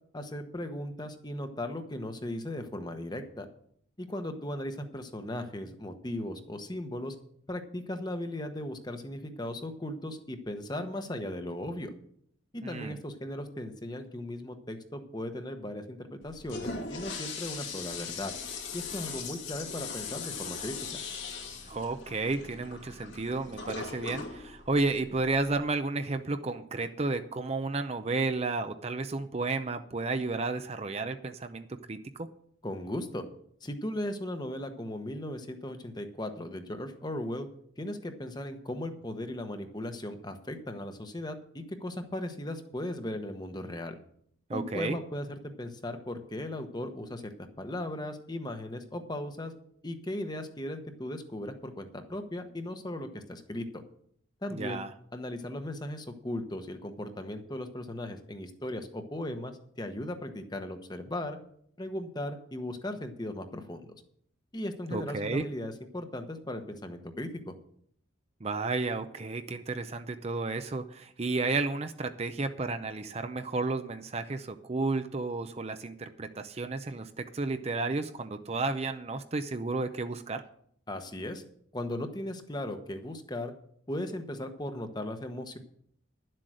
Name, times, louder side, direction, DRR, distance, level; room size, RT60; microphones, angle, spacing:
voice 1, 0.1-3.5 4.0-7.1 7.5-11.9 12.5-18.3 18.7-21.0 32.6-33.2 33.6-37.5 37.8-44.0 44.5-49.5 49.8-53.8 54.4-54.8 55.1-61.4 61.8-63.9 64.5-67.5 80.9-81.4 81.7-83.5 83.9-85.6, left 1 dB, 20° left, 7 dB, 1.0 m, -37 dB
voice 2, 12.6-12.9 21.7-32.3 44.5-45.0 54.5-54.9 64.9-65.4 68.4-80.4, right 3 dB, 30° right, 9 dB, 0.5 m, -32 dB
Toilet flush, 16.2-25.6, left 5 dB, 75° left, 2.6 m, -40 dB
11.5 x 7.7 x 6.3 m, 0.66 s
head